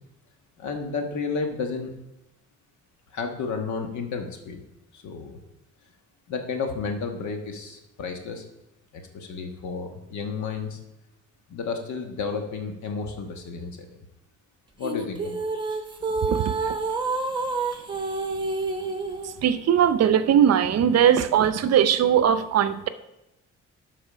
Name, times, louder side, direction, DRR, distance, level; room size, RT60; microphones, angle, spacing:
voice 1, 0.6-1.9 3.1-4.6 4.9-5.4 6.3-8.4 8.9-10.8 11.5-13.9 14.8-15.4 15.7-15.8, left 5 dB, 70° left, 4 dB, 1.4 m, -32 dB
sound 1, 14.8-19.3, right 3 dB, 15° right, 1.0 m, -28 dB
voice 2, 16.3-16.8 19.2-22.9, right 9 dB, 55° right, 13 dB, 0.6 m, -20 dB
12.0 x 4.2 x 5.0 m, 0.92 s
cardioid pair, 90°, 30 cm